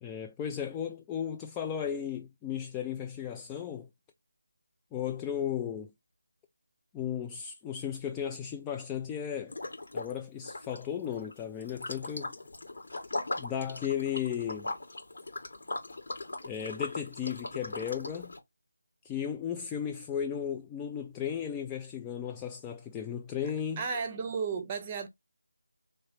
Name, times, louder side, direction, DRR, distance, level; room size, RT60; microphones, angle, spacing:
voice 1, 0.0-3.9 4.9-5.9 6.9-9.6 9.9-12.3 13.4-14.7 16.4-18.3 19.0-23.8, left 8 dB, 10° left, 0.3 m, -35 dB
Liquid, 9.5-10.2 10.4-18.4, left 2 dB, 65° left, 1.6 m, -39 dB
voice 2, 23.8-25.1, right 5 dB, 20° right, 0.8 m, -33 dB
3.2 x 3.1 x 2.7 m
figure-of-eight pair, 165°, 0 cm